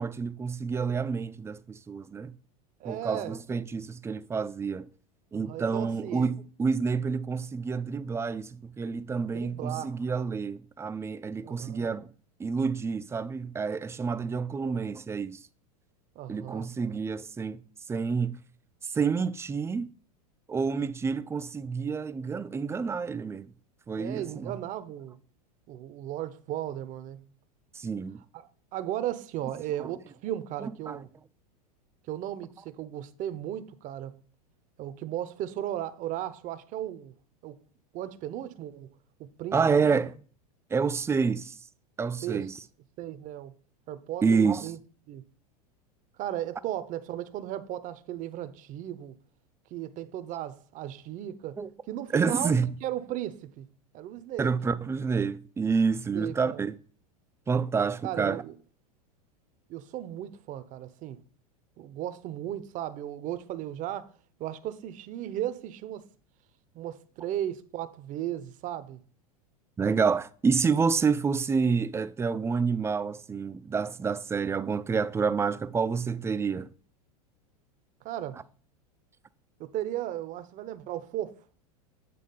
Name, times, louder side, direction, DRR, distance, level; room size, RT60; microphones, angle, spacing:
voice 1, 0.0-2.3 2.8-4.9 5.3-12.1 12.4-15.4 16.3-17.6 17.9-18.4 18.8-19.9 20.5-23.5 23.9-24.5 27.8-28.2 30.6-31.0 39.5-40.2 40.7-41.6 42.0-42.6 44.2-44.7 51.6-51.7 52.1-52.7 54.4-56.8 57.5-58.4 69.8-76.7, right 5 dB, 15° right, 0.4 m, -28 dB
voice 2, 2.8-3.4 5.3-6.3 9.3-10.0 11.4-11.9 14.6-14.8 16.2-16.7 23.9-25.2 25.7-27.2 28.3-31.1 32.1-34.1 34.8-37.1 37.4-37.6 37.9-38.9 39.2-40.0 42.2-42.5 43.0-43.5 43.9-44.8 45.1-45.2 46.2-49.2 49.7-51.6 51.9-53.7 53.9-54.5 56.1-56.6 58.0-58.5 59.7-61.2 61.8-64.1 64.4-66.0 66.7-69.0 78.0-78.4 79.6-81.3, right 12 dB, 40° right, 0.7 m, -36 dB
8.5 x 3.6 x 5.4 m
hypercardioid pair, 95°, 20 cm